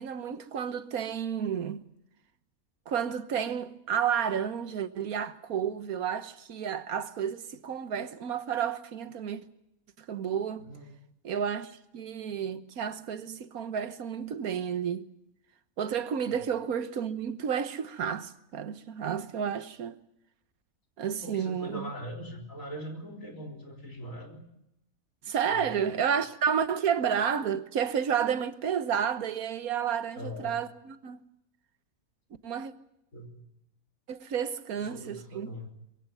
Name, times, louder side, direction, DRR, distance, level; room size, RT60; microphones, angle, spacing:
voice 1, 0.0-1.9 2.9-9.4 10.1-10.7 11.2-15.1 15.8-19.9 21.0-21.9 25.2-31.2 32.4-32.7 34.1-35.5, right 8 dB, 90° right, 1.6 m, -31 dB
voice 2, 21.2-24.4 25.5-26.2 30.2-30.5 33.1-33.4 34.7-35.7, equal, 70° left, 4.3 m, -41 dB
22.0 x 16.5 x 9.2 m
omnidirectional pair, 1.5 m